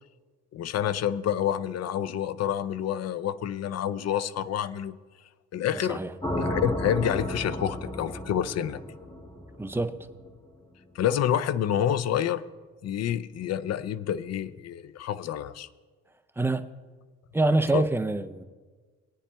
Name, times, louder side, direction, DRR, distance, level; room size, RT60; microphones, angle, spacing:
voice 1, 0.5-5.0 5.5-6.0 6.3-8.8 11.0-12.4 12.8-15.7 17.7-17.8, left 10 dB, 55° left, 0.5 m, -28 dB
voice 2, 5.7-6.1 9.6-10.0 16.4-16.7 17.3-18.4, right 2 dB, 10° right, 0.5 m, -25 dB
sound 1, 6.2-10.3, left 1 dB, 15° left, 2.1 m, -33 dB
21.0 x 9.6 x 2.2 m
cardioid pair, 90°, 30 cm